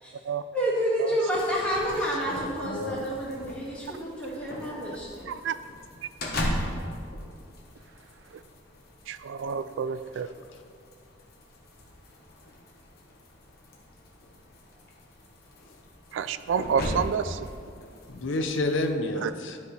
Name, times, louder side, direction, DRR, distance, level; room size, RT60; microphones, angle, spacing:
voice 1, 0.5-5.3, equal, 5° left, -7 dB, 1.7 m, -29 dB
Door slam, 1.3-18.9, equal, 50° left, 1.1 m, -39 dB
voice 2, 1.9-3.0 18.1-19.6, left 2 dB, 80° left, 6 dB, 0.6 m, -30 dB
voice 3, 5.3-5.6 9.1-10.3 16.1-17.5 19.2-19.3, right 6 dB, 80° right, 12 dB, 0.3 m, -29 dB
11.5 x 5.1 x 3.2 m, 2.2 s
head